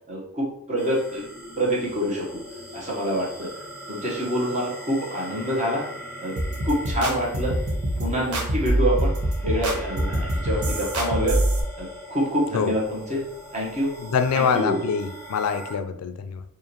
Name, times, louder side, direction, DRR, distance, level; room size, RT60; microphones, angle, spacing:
voice 1, 0.1-1.2 1.6-2.4 2.7-3.5 3.9-5.8 6.2-6.4 6.6-7.6 8.0-9.1 9.4-11.4 11.8-13.2 13.5-13.9 14.3-14.8, equal, 30° right, -3 dB, 1.1 m, -26 dB
sound 1, 0.8-15.7, equal, 10° left, 0.8 m, -40 dB
sound 2, 6.4-11.6, right 1 dB, 90° right, 0.9 m, -25 dB
voice 2, 14.0-16.4, left 6 dB, 90° left, 10 dB, 0.4 m, -25 dB
4.8 x 2.5 x 3.0 m, 0.75 s
head